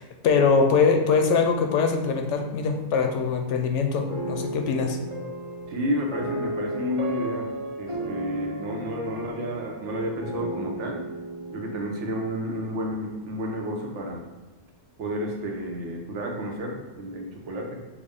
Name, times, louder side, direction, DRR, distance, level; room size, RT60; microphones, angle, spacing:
voice 1, 0.0-5.0, left 5 dB, 85° left, 4 dB, 0.9 m, -22 dB
sound 1, 4.1-13.3, right 1 dB, 45° right, 0.4 m, -35 dB
voice 2, 5.7-7.5 7.8-11.0 11.5-14.2 15.0-17.8, equal, 80° right, 1 dB, 1.1 m, -31 dB
6.0 x 2.1 x 3.4 m, 1.1 s
omnidirectional pair, 1.2 m